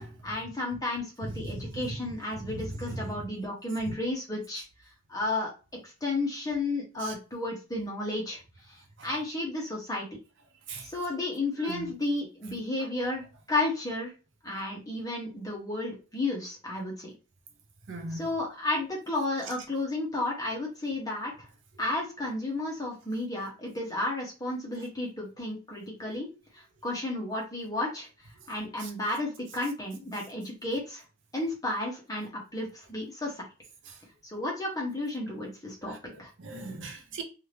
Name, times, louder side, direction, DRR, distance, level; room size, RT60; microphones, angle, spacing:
voice 1, 0.2-4.6 5.1-5.5 5.8-8.4 8.7-10.1 10.8-14.1 14.4-17.1 18.1-21.3 21.8-26.3 26.5-28.1 28.5-31.0 31.3-33.4 34.2-35.9 36.2-36.3, left 2 dB, 15° left, 0.9 m, -32 dB
voice 2, 1.2-2.0 2.4-3.1 3.9-4.0 7.0-7.1 9.0-9.1 10.7-10.9 11.6-11.9 17.9-18.3 28.8-28.9 33.9-34.0 35.9-37.2, right 2 dB, 55° right, 0.6 m, -38 dB
2.7 x 2.4 x 3.3 m
head